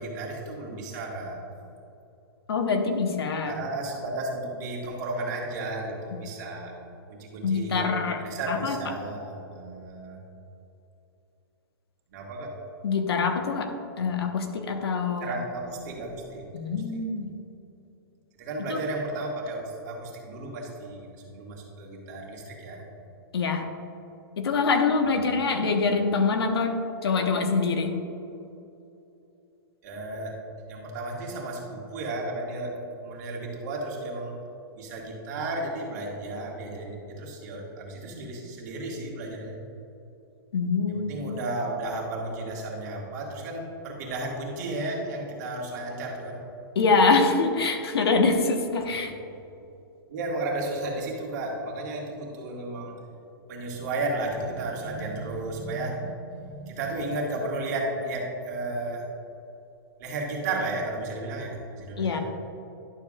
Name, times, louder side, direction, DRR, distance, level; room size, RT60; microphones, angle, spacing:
voice 1, 0.0-1.4 3.4-6.8 7.1-7.9 8.2-10.2 12.1-12.5 15.2-16.5 16.9-17.0 18.4-22.8 25.0-25.2 29.8-30.4 30.7-34.3 34.8-39.6 40.9-46.4 50.1-52.9 53.5-59.1 60.0-62.2, right 2 dB, 45° right, -1 dB, 1.9 m, -33 dB
voice 2, 2.5-3.6 7.4-8.8 12.8-13.7 14.0-15.3 16.5-17.3 18.7-18.8 23.3-23.7 24.4-27.9 40.5-41.4 46.7-49.1 62.0-62.2, left 4 dB, 85° left, 4 dB, 1.2 m, -25 dB
11.5 x 6.9 x 2.4 m, 2.8 s
hypercardioid pair, 155°, 13 cm